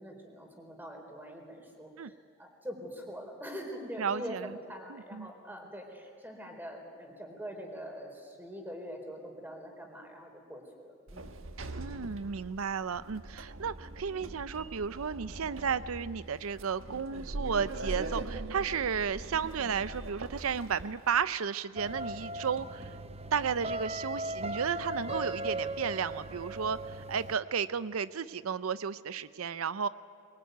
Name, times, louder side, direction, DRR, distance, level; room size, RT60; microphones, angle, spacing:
voice 1, 0.0-11.3, equal, 10° right, 2 dB, 4.3 m, -44 dB
voice 2, 4.0-4.5 4.9-5.3 11.8-22.9 23.3-29.9, right 6 dB, 90° right, 15 dB, 0.6 m, -33 dB
Sliding door, 11.1-21.2, right 2 dB, 70° right, 1.4 m, -42 dB
sound 1, 21.8-27.4, right 2 dB, 30° right, 0.7 m, -38 dB
23.5 x 23.0 x 9.3 m, 2.4 s
head